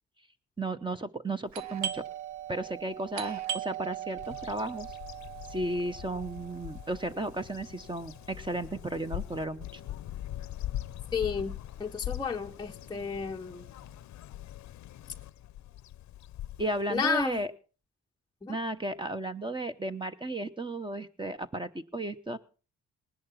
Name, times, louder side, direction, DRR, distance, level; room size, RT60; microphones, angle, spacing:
voice 1, 0.6-2.0 2.5-5.0 5.5-9.8 16.6-17.5 18.5-22.4, right 1 dB, 15° right, 1.1 m, -34 dB
Doorbell, 1.5-10.9 11.1-11.2 11.9-12.2 12.5-13.9, right 10 dB, 70° right, 0.9 m, -40 dB
Bird vocalization bird call bird song, 4.2-17.4, left 13 dB, 70° left, 0.7 m, -42 dB
voice 2, 11.1-13.6 16.9-17.4 18.4-18.6, left 5 dB, 15° left, 0.8 m, -32 dB
19.0 x 10.5 x 5.7 m
cardioid pair, 90°, 30 cm